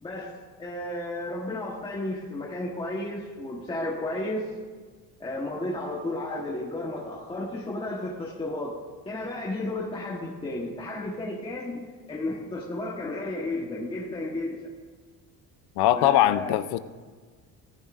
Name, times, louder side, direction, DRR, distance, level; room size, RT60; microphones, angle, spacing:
voice 1, 0.0-4.5 5.2-8.8 9.0-11.8 12.1-14.6 15.9-16.5, left 2 dB, 15° left, -4 dB, 1.2 m, -33 dB
voice 2, 15.8-16.8, left 13 dB, 80° left, 13 dB, 0.7 m, -21 dB
17.5 x 10.0 x 2.5 m, 1.5 s
cardioid pair, 175°, 38 cm